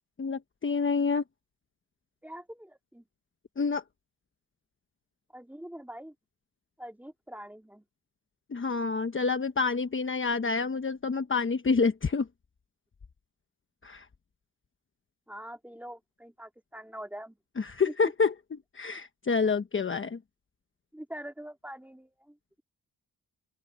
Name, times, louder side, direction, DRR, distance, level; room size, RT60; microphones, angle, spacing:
voice 1, 0.2-1.2 3.6-3.8 8.5-12.3 13.8-14.0 17.6-18.3 18.7-20.2, left 4 dB, 35° left, 1.1 m, -28 dB
voice 2, 2.2-3.0 5.3-6.1 6.8-7.8 15.3-17.4 17.9-18.1 20.9-22.6, equal, 5° right, 2.9 m, -44 dB
open air
cardioid pair, 100°, 36 cm